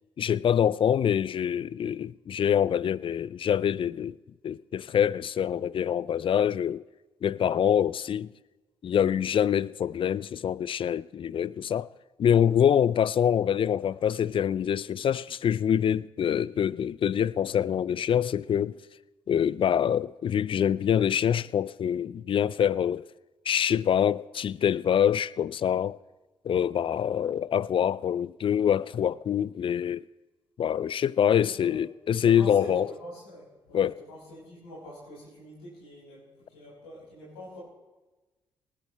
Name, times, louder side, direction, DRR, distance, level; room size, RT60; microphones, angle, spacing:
voice 1, 0.2-4.2 4.4-6.8 7.2-8.3 8.8-11.9 12.2-18.8 19.3-23.0 23.5-26.0 26.4-30.0 30.6-32.9 33.7-34.0, left 9 dB, 45° left, 0.4 m, -25 dB
voice 2, 12.3-12.8 31.3-31.8 32.2-37.6, equal, 90° left, 6.2 m, -45 dB
19.5 x 15.5 x 3.4 m
hypercardioid pair, 45°, 12 cm